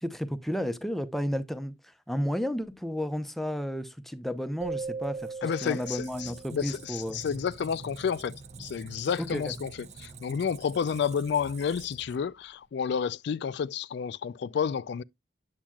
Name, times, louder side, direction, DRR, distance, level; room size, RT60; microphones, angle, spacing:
voice 1, 0.0-7.2 9.2-9.5, equal, ahead, 0.6 m, -32 dB
sound 1, 4.6-7.2, right 4 dB, 60° right, 0.9 m, -39 dB
Squeak, 5.0-12.6, right 4 dB, 40° right, 0.5 m, -47 dB
voice 2, 5.4-9.7 10.0-15.0, left 7 dB, 65° left, 0.3 m, -30 dB
8.6 x 7.4 x 2.3 m
head